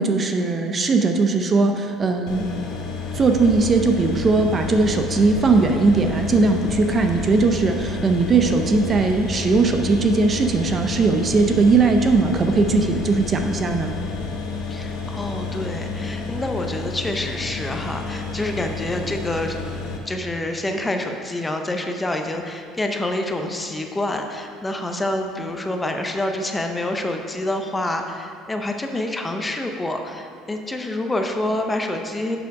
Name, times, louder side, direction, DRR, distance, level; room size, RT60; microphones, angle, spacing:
voice 1, 0.0-2.5 3.1-13.9, right 3 dB, 30° right, 5 dB, 0.6 m, -19 dB
sound 1, 2.3-20.0, left 4 dB, 70° left, 1.0 m, -31 dB
sound 2, 3.1-14.3, right 3 dB, 65° right, 1.0 m, -37 dB
voice 2, 14.7-19.6 20.1-32.4, left 1 dB, 15° left, 4 dB, 0.7 m, -27 dB
7.0 x 6.3 x 4.6 m, 2.3 s
cardioid pair, 110°, 0 cm